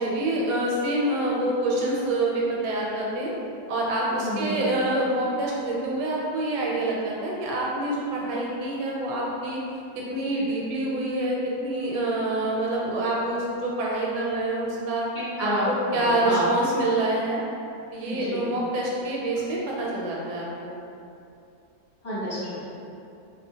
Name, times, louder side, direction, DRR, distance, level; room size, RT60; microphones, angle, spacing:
voice 1, 0.0-3.3 3.7-9.6 9.9-11.4 11.6-15.1 15.4-17.4 17.9-20.7, right 1 dB, 75° right, -4 dB, 1.1 m, -26 dB
voice 2, 4.2-4.7 15.4-16.5 18.1-18.5 22.0-22.6, left 1 dB, 40° left, -13 dB, 1.1 m, -29 dB
2.9 x 2.7 x 2.7 m, 2.7 s
omnidirectional pair, 1.8 m